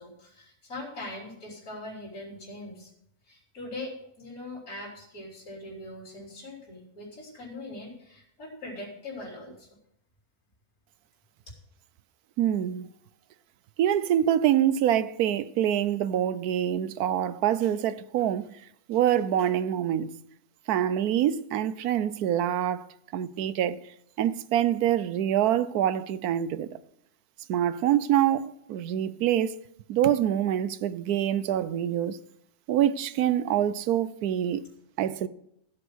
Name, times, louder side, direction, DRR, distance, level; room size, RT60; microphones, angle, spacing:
voice 1, 0.0-2.9 3.3-9.7, left 2 dB, 70° left, 4.0 m, -41 dB
voice 2, 12.4-12.9 13.8-18.5 18.9-20.1 20.7-22.9 23.1-23.8 24.2-26.7 27.5-29.6 29.9-32.2 32.7-34.6 35.0-35.3, right 11 dB, 85° right, 1.2 m, -25 dB
15.0 x 8.2 x 6.2 m
omnidirectional pair, 1.6 m